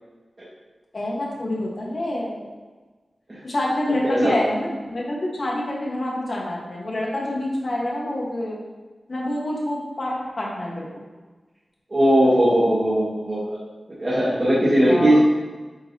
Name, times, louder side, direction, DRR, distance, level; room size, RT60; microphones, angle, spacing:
voice 1, 0.9-2.5 3.4-8.6 9.1-10.9 14.8-15.2, left 1 dB, 55° left, -4 dB, 1.6 m, -27 dB
voice 2, 4.0-4.3 11.9-13.6 14.0-15.2, equal, 35° right, -10 dB, 1.9 m, -19 dB
8.7 x 4.1 x 2.9 m, 1.3 s
wide cardioid pair, 90°, 0 cm